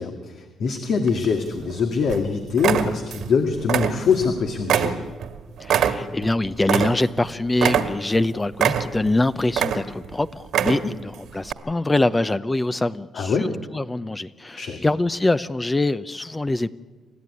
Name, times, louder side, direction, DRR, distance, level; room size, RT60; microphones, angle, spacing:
voice 1, 0.0-5.0 10.8-10.9 13.1-13.5 14.6-14.8, left 5 dB, 65° left, 4 dB, 2.2 m, -23 dB
sound 1, 1.1-1.7 2.1-2.3 2.6-3.3 3.6-4.3 4.7-7.2 7.6-8.2 8.6-9.1 9.5-10.1 10.4-11.0 11.5-11.6, right 9 dB, 75° right, 1.8 m, -23 dB
voice 2, 5.6-13.5 13.7-16.7, left 2 dB, 15° left, 13 dB, 0.7 m, -24 dB
29.0 x 13.5 x 9.8 m, 1.4 s
cardioid pair, 90°, 0 cm